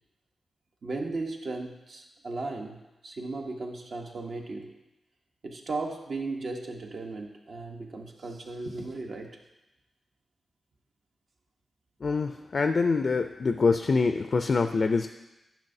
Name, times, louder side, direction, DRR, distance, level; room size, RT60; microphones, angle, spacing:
voice 1, 0.8-4.7 5.4-9.4, right 3 dB, 70° right, 2 dB, 1.0 m, -36 dB
voice 2, 12.0-15.1, left 4 dB, 60° left, 8 dB, 0.4 m, -25 dB
10.5 x 5.8 x 2.7 m, 0.98 s
cardioid pair, 50°, 0 cm